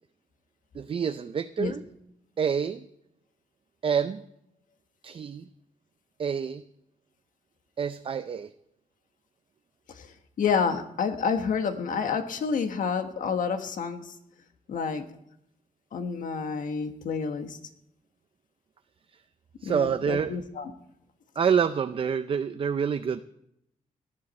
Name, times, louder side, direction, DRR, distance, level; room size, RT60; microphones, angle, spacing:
voice 1, 0.7-1.8 2.4-2.9 3.8-4.2 5.0-5.5 6.2-6.6 7.8-8.5 19.1-19.2 19.6-20.4 21.4-23.2, right 7 dB, 40° right, 10 dB, 0.5 m, -27 dB
voice 2, 9.9-14.1 14.7-15.0 15.9-17.6 19.6-20.7, left 6 dB, 70° left, 7 dB, 1.4 m, -29 dB
18.0 x 11.0 x 4.2 m, 0.79 s
wide cardioid pair, 140°, 14 cm